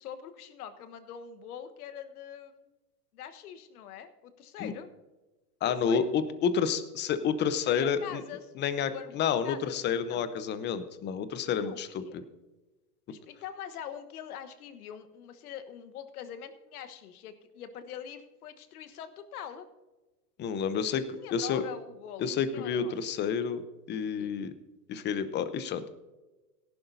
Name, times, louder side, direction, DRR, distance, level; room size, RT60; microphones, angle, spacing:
voice 1, 0.0-2.7 3.1-4.9 5.6-6.1 7.6-9.8 10.1-10.2 11.6-12.2 13.1-19.7 21.1-23.0 24.2-24.3, left 9 dB, 65° left, 9 dB, 1.3 m, -43 dB
voice 2, 5.6-8.2 8.6-12.0 20.4-21.0 21.3-21.6 22.2-23.6 23.9-24.5 24.9-25.9, left 7 dB, 25° left, 12 dB, 0.8 m, -29 dB
17.5 x 11.5 x 2.7 m, 1.2 s
hypercardioid pair, 120°, 47 cm